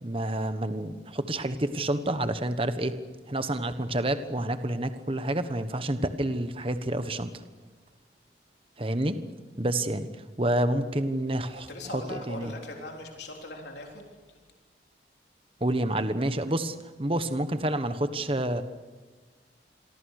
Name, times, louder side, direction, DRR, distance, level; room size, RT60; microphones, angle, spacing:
voice 1, 0.0-2.9 3.3-7.3 8.8-9.2 9.6-10.1 10.4-12.5 15.6-18.6, right 1 dB, 30° right, 10 dB, 1.3 m, -28 dB
voice 2, 11.7-14.4, left 2 dB, 75° left, 1 dB, 3.6 m, -40 dB
27.5 x 23.5 x 6.6 m, 1.4 s
head